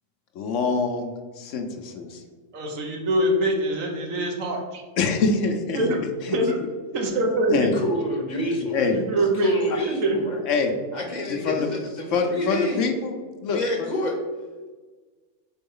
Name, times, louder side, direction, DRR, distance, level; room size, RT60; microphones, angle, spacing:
voice 1, 0.3-1.1 1.4-2.2 5.0-5.8 6.2-6.4 7.5-7.8 8.7-8.9 10.4-10.8 11.3-11.7 12.1-13.2 13.4-13.9, left 4 dB, 70° left, 4 dB, 1.1 m, -25 dB
voice 2, 2.5-4.8 5.7-6.0 6.3-6.6 6.9-7.7 8.8-9.5 10.0-10.2, right 1 dB, 85° right, 1 dB, 1.4 m, -24 dB
voice 3, 7.7-8.8 9.1-10.4 10.9-12.8 13.5-14.2, left 1 dB, 40° left, 1 dB, 0.9 m, -28 dB
4.6 x 4.0 x 5.5 m, 1.4 s
omnidirectional pair, 1.3 m